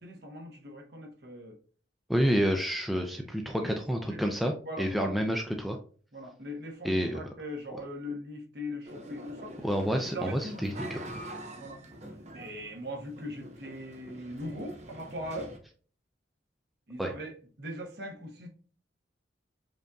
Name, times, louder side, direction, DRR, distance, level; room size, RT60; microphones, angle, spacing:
voice 1, 0.0-1.6 3.0-4.2 4.7-5.2 6.1-11.2 11.5-11.8 12.3-15.6 16.9-18.5, equal, 55° right, 1 dB, 1.0 m, -41 dB
voice 2, 2.1-5.8 6.8-7.3 9.6-11.0 17.0-17.1, equal, ahead, 2 dB, 0.3 m, -29 dB
sound 1, 8.8-15.6, right 1 dB, 35° right, 0.7 m, -44 dB
5.1 x 2.6 x 2.3 m, 0.42 s
head